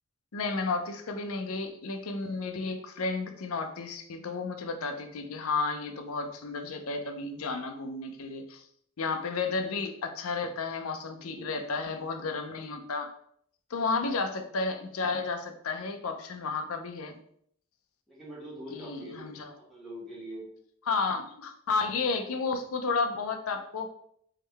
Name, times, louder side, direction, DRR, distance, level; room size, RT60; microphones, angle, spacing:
voice 1, 0.3-8.6 9.0-13.1 13.7-17.1 18.7-19.5 20.9-23.9, left 4 dB, 70° left, 6 dB, 0.6 m, -32 dB
voice 2, 11.2-11.7 18.1-19.3 19.7-20.5, equal, ahead, -6 dB, 1.5 m, -43 dB
3.7 x 3.1 x 3.3 m, 0.67 s
head